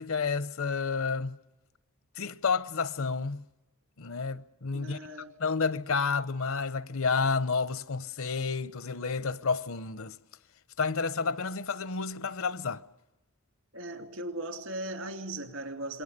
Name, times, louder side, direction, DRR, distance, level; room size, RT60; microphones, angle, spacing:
voice 1, 0.0-1.4 2.2-3.4 4.0-5.0 5.4-10.2 10.8-12.8, left 4 dB, 65° left, 0.8 m, -30 dB
voice 2, 4.7-5.3 13.7-16.0, right 1 dB, 65° right, 2.6 m, -38 dB
27.0 x 21.5 x 6.7 m
head